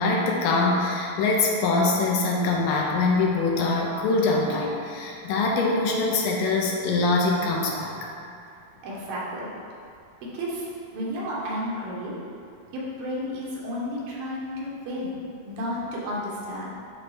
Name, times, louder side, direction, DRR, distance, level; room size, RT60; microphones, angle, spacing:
voice 1, 0.0-8.1, left 3 dB, 80° left, -1 dB, 2.5 m, -23 dB
voice 2, 8.8-9.5 10.3-10.7 10.9-12.2 12.7-15.2 15.4-16.7, equal, 80° right, -5 dB, 3.1 m, -32 dB
9.6 x 3.2 x 4.9 m, 2.6 s
omnidirectional pair, 4.1 m